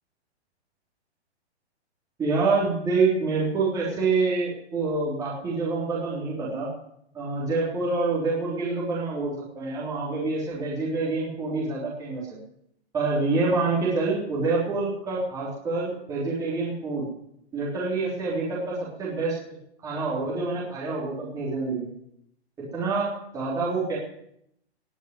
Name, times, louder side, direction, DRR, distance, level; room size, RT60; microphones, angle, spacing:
voice 1, 2.2-6.7 7.1-12.4 12.9-17.1 17.5-19.4 19.8-21.9 22.7-24.0, right 3 dB, 10° right, -7 dB, 3.5 m, -27 dB
20.0 x 6.6 x 9.5 m, 0.76 s
hypercardioid pair, 165°, 34 cm